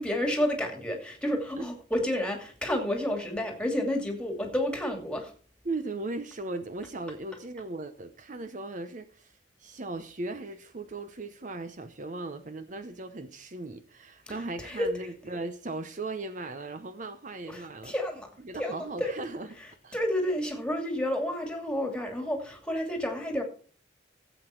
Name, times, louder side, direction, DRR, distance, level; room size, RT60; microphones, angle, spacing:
voice 1, 0.0-5.3 14.3-14.9 17.5-18.3 18.6-19.1 19.9-23.4, left 1 dB, 5° left, 2.5 m, -30 dB
voice 2, 5.6-17.9 18.4-19.5 19.8-20.0, right 2 dB, 45° right, 0.8 m, -37 dB
15.0 x 8.1 x 4.5 m
head